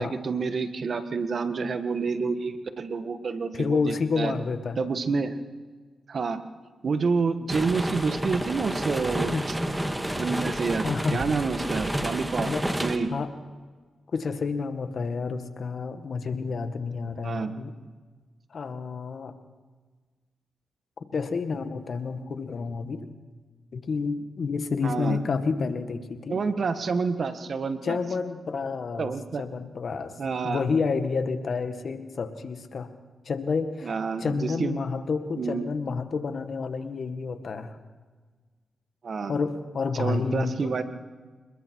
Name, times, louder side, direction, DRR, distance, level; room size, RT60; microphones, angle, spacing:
voice 1, 0.0-4.3 4.8-5.4 6.1-6.4 6.8-9.3 10.1-12.5 12.8-13.1 17.2-17.6 24.8-25.2 26.3-28.0 29.0-29.4 30.2-30.6 33.8-34.8 35.4-35.7 39.0-39.3 40.0-40.8, right 4 dB, 60° right, 9 dB, 1.7 m, -28 dB
voice 2, 3.5-4.8 9.3-9.5 10.8-11.2 12.4-12.7 13.1-13.3 14.1-17.7 18.5-19.3 21.1-23.1 23.7-26.4 27.8-29.1 29.4-32.9 33.3-33.9 34.2-37.8 39.3-40.7, left 4 dB, 65° left, 8 dB, 1.8 m, -29 dB
sound 1, 7.5-13.0, right 1 dB, 10° right, 2.2 m, -30 dB
27.5 x 21.0 x 4.8 m, 1.4 s
cardioid pair, 50°, 0 cm